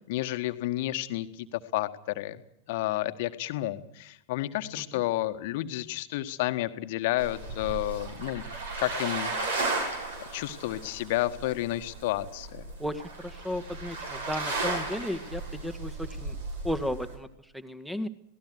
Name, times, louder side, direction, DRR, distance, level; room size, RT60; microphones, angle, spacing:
voice 1, 0.1-2.4 2.7-8.4 8.8-9.4 10.3-12.6, left 16 dB, 50° left, 9 dB, 1.6 m, -31 dB
sound 1, 7.2-17.2, right 3 dB, 65° right, 6.3 m, -35 dB
voice 2, 12.8-16.4 16.6-18.1, left 1 dB, ahead, 13 dB, 1.8 m, -34 dB
27.0 x 18.5 x 6.3 m, 0.77 s
figure-of-eight pair, 90°, 0 cm